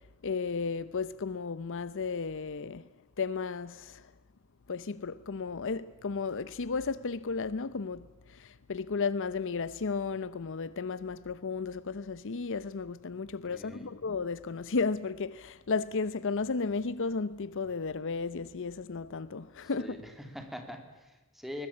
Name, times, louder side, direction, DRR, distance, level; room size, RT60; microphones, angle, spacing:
voice 1, 0.2-2.9 3.2-4.1 4.7-20.0, left 4 dB, 60° left, 0.7 m, -34 dB
voice 2, 13.5-13.9 19.6-21.7, left 1 dB, ahead, 3.0 m, -43 dB
21.0 x 20.5 x 8.4 m
head